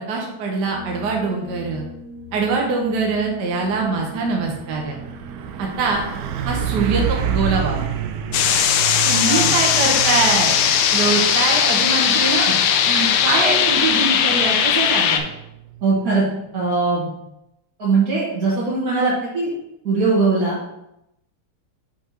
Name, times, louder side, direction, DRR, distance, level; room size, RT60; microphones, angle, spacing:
voice 1, 0.0-1.9 2.3-5.0 5.6-6.0 6.4-7.9 9.0-10.6 10.9-12.5 13.2-15.3, right 4 dB, 60° right, 0 dB, 1.3 m, -23 dB
sound 1, 0.6-8.1, left 2 dB, 55° left, 2.0 m, -41 dB
Truck, 2.9-3.2 3.5-16.1, right 8 dB, 85° right, 0.9 m, -29 dB
sound 2, 8.3-15.2, left 8 dB, 80° left, 1.5 m, -18 dB
voice 2, 15.8-16.2 16.5-17.1 17.8-19.5 19.8-20.6, right 3 dB, 45° right, -9 dB, 1.9 m, -20 dB
5.7 x 4.4 x 4.4 m, 0.86 s
omnidirectional pair, 2.4 m